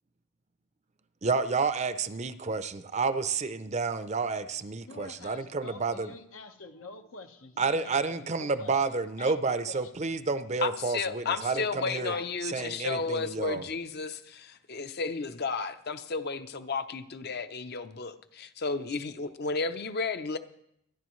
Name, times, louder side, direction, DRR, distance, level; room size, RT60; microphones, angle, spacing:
voice 1, 1.2-6.1 7.6-12.1 12.4-13.6, right 4 dB, 35° right, 0.5 m, -30 dB
voice 2, 4.9-9.3 9.7-9.9 11.8-12.3 12.5-12.8, left 3 dB, 85° left, 1.2 m, -47 dB
voice 3, 10.6-20.4, left 4 dB, 50° left, 0.7 m, -33 dB
26.0 x 10.5 x 3.2 m
head